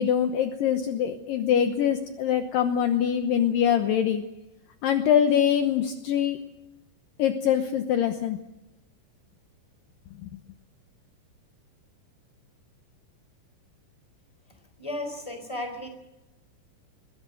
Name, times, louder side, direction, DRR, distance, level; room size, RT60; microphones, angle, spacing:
voice 1, 0.0-4.2 4.8-6.4 7.2-8.4 10.2-10.4, left 9 dB, 80° left, 7 dB, 2.0 m, -24 dB
voice 2, 14.8-15.9, left 1 dB, 5° left, 6 dB, 3.3 m, -34 dB
21.5 x 16.5 x 7.9 m, 0.98 s
omnidirectional pair, 5.4 m